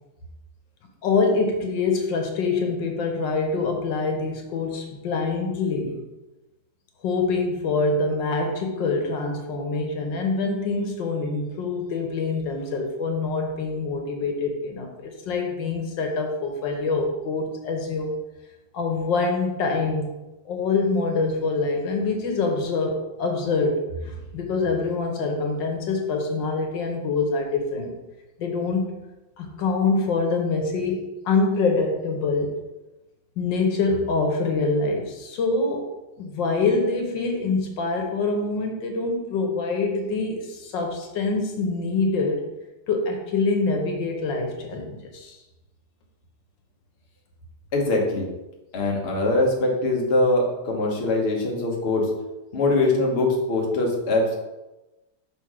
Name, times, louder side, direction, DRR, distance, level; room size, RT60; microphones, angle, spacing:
voice 1, 1.0-6.0 7.0-18.1 18.7-20.1 20.4-27.9 28.4-28.8 29.4-32.6 33.4-35.9 36.2-42.4 42.9-45.4, left 3 dB, 75° left, 2 dB, 1.6 m, -25 dB
voice 2, 47.7-48.3 48.7-52.1 52.5-54.4, left 2 dB, 40° left, -1 dB, 1.1 m, -22 dB
6.0 x 3.6 x 4.8 m, 1.0 s
omnidirectional pair, 2.0 m